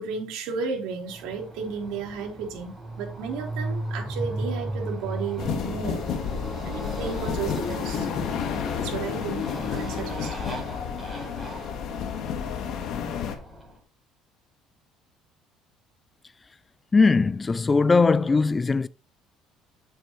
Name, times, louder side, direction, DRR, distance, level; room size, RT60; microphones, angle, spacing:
voice 1, 0.0-6.1 6.6-8.1 8.8-10.3, right 5 dB, 80° right, 3.9 m, -33 dB
Motorcycle, 1.1-13.8, right 1 dB, 5° right, 5.3 m, -36 dB
sound 1, 5.4-13.4, left 7 dB, 55° left, 1.7 m, -31 dB
voice 2, 16.9-18.9, left 4 dB, 15° left, 0.4 m, -20 dB
9.4 x 7.4 x 3.2 m
cardioid pair, 150°, 0 cm